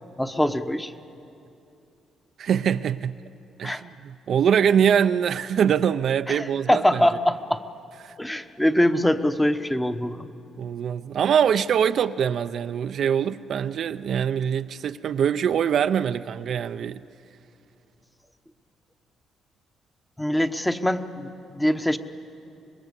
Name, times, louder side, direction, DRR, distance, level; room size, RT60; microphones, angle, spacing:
voice 1, 0.2-0.9 3.6-3.8 6.3-7.6 8.2-10.3 20.2-22.0, left 1 dB, 5° left, 1.0 m, -23 dB
voice 2, 2.4-3.1 3.6-7.1 8.0-8.1 10.6-17.0, right 8 dB, 65° right, 0.5 m, -23 dB
25.5 x 21.0 x 8.2 m
cardioid pair, 90°, 0 cm